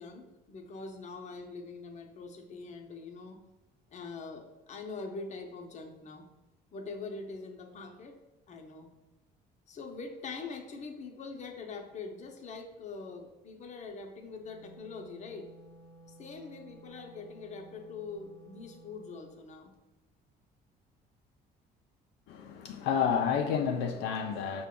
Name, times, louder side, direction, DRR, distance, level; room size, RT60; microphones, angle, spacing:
voice 1, 0.0-3.4 3.9-6.3 6.7-8.2 8.5-8.9 9.7-15.5 16.2-19.7, left 4 dB, 45° left, 0.7 m, -43 dB
Wind instrument woodwind instrument, 14.2-19.4, right 1 dB, 65° right, 0.7 m, -55 dB
voice 2, 22.3-24.7, left 7 dB, 85° left, 0.4 m, -30 dB
5.7 x 2.3 x 3.7 m
cardioid pair, 110°, 17 cm